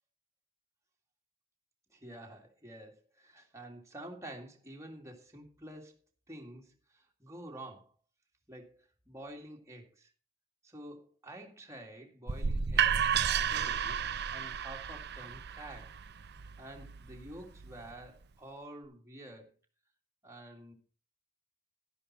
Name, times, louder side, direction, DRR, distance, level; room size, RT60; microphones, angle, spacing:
voice 1, 1.9-6.0 6.3-7.9 8.5-10.1 10.6-14.0 14.3-16.0 16.6-19.5 20.2-20.7, right 1 dB, 15° right, 1 dB, 2.2 m, -49 dB
sound 1, 12.3-18.1, right 8 dB, 55° right, 0.7 m, -33 dB
12.0 x 10.5 x 4.3 m, 0.37 s
head